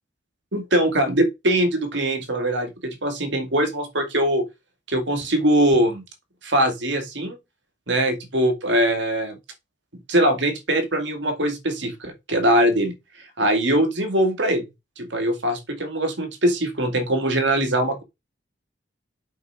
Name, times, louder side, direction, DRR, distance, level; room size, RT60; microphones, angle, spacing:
voice 1, 0.5-4.4 4.9-6.0 6.4-7.4 7.9-9.4 10.1-12.9 13.4-14.6 15.0-18.0, right 1 dB, 70° right, 2.4 m, -22 dB
7.7 x 6.1 x 4.8 m
head